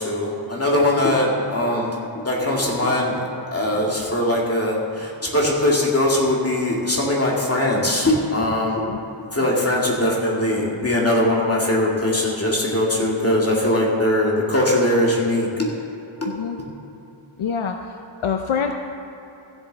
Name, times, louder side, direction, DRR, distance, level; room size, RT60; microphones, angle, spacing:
voice 1, 0.0-8.8 9.3-15.5, left 1 dB, 30° left, -3 dB, 2.2 m, -21 dB
voice 2, 17.4-17.8 18.2-18.7, left 6 dB, 75° left, 5 dB, 0.7 m, -24 dB
15.0 x 7.1 x 4.0 m, 2.9 s
wide cardioid pair, 65°, 49 cm